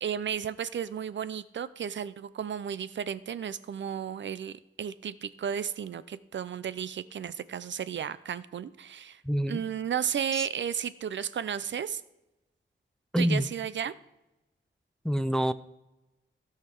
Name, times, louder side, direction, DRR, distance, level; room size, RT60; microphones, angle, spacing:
voice 1, 0.0-9.2 9.5-12.0 13.2-13.9, right 8 dB, 65° right, 16 dB, 0.4 m, -33 dB
voice 2, 9.2-9.6 10.3-10.5 13.1-13.5 15.0-15.5, equal, 5° left, 13 dB, 0.3 m, -26 dB
16.0 x 5.8 x 4.5 m, 0.98 s
wide cardioid pair, 150°, 21 cm